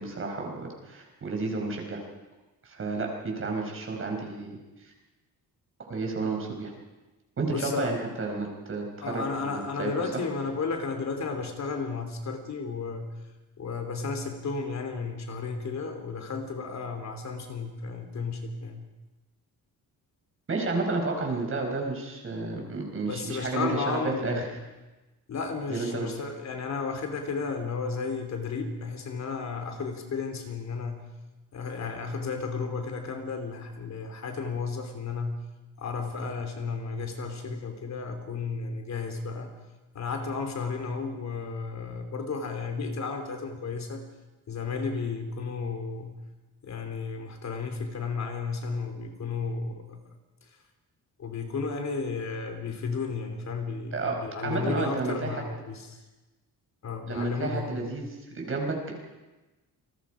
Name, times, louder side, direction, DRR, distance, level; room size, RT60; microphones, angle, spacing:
voice 1, 0.0-2.0 2.6-4.9 5.9-6.7 7.4-9.9 20.5-24.4 25.7-26.1 53.9-55.4 57.1-58.9, right 3 dB, 35° right, 1 dB, 5.0 m, -31 dB
voice 2, 7.5-7.9 9.0-13.1 13.6-18.9 23.1-24.5 25.3-31.1 31.5-35.4 35.8-39.6 40.0-44.0 44.5-46.2 46.6-50.0 51.2-56.0 56.8-58.0, left 4 dB, 45° left, 5 dB, 3.3 m, -33 dB
29.0 x 20.0 x 5.1 m, 1.1 s
cardioid pair, 160°, 37 cm